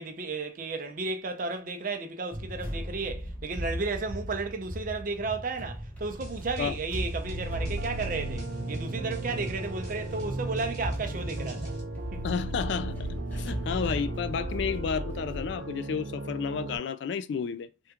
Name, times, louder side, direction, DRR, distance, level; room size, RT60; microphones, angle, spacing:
voice 1, 0.0-11.8 12.1-12.2, right 3 dB, 45° right, 0.5 m, -33 dB
sound 1, 2.3-15.5, right 1 dB, 10° left, 0.8 m, -38 dB
sound 2, 6.0-11.8, right 1 dB, 20° right, 1.2 m, -39 dB
sound 3, 7.2-16.8, right 2 dB, 90° right, 0.6 m, -37 dB
voice 2, 12.2-17.7, left 6 dB, 65° left, 0.3 m, -31 dB
3.5 x 2.3 x 2.9 m
head